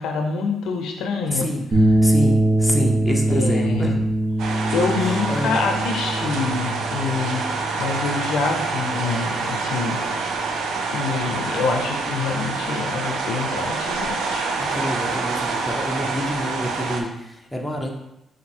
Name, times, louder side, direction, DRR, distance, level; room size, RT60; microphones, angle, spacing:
voice 1, 0.0-1.5 3.3-3.9 4.7-10.0 10.9-14.5, left 4 dB, 80° left, 3 dB, 0.6 m, -26 dB
voice 2, 1.3-1.7 2.0-4.0 5.0-5.6 14.6-17.9, equal, 5° left, 0 dB, 0.8 m, -27 dB
sound 1, 1.7-10.2, right 1 dB, 45° right, 1.5 m, -23 dB
sound 2, 4.4-17.0, right 4 dB, 80° right, 0.6 m, -27 dB
4.3 x 2.6 x 4.2 m, 0.85 s
cardioid pair, 90°, 0 cm